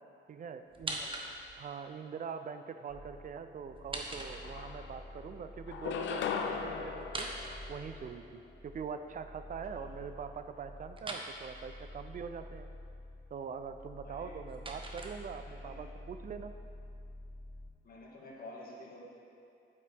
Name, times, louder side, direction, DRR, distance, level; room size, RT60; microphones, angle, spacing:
voice 1, 0.3-1.0 1.6-7.3 7.7-12.7 13.3-16.6, right 6 dB, 40° right, 9 dB, 0.5 m, -43 dB
sound 1, 0.7-1.7 3.7-4.9 7.0-8.3 11.0-11.3 14.0-15.6, right 2 dB, 25° right, 1.0 m, -42 dB
sound 2, 2.9-17.7, left 1 dB, ahead, 0.9 m, -50 dB
sound 3, 4.0-4.1 4.4-5.2 5.7-8.3, left 6 dB, 70° left, 0.7 m, -38 dB
voice 2, 14.0-14.4 15.4-15.9 17.8-19.0, left 2 dB, 50° left, -4 dB, 2.0 m, -50 dB
8.6 x 8.5 x 3.5 m, 2.5 s
cardioid pair, 90°, 20 cm